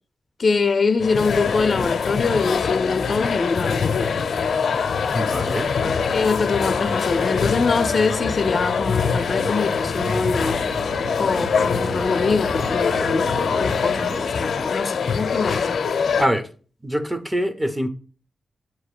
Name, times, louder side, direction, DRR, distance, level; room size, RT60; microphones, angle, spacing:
voice 1, 0.4-4.2 6.1-10.7 11.2-15.7, left 4 dB, 50° left, 0.6 m, -24 dB
sound 1, 1.0-16.3, left 6 dB, 85° left, 0.7 m, -23 dB
sound 2, 4.2-14.2, right 3 dB, 85° right, 1.2 m, -35 dB
voice 2, 5.1-5.7 16.2-16.5 16.8-17.9, equal, 10° right, 0.8 m, -24 dB
8.0 x 3.0 x 4.9 m
wide cardioid pair, 125°, 0 cm